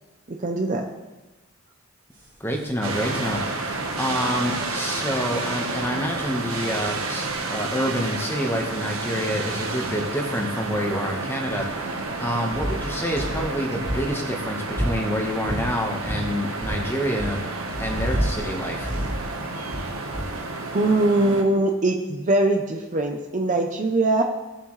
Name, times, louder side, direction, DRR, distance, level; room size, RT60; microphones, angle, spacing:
voice 1, 0.4-0.8 20.7-24.2, right 2 dB, 35° right, 3 dB, 0.7 m, -21 dB
sound 1, 2.2-2.3 2.6-2.7 3.0-3.1 3.2-10.3 11.1-11.2 11.4-15.7 16.0-20.3, equal, 20° right, 1.9 m, -32 dB
voice 2, 2.4-17.4 17.8-18.9, equal, 10° left, 1 dB, 1.3 m, -28 dB
sound 2, 2.8-21.4, right 3 dB, 70° right, 1.3 m, -31 dB
17.0 x 7.3 x 3.3 m, 1.2 s
head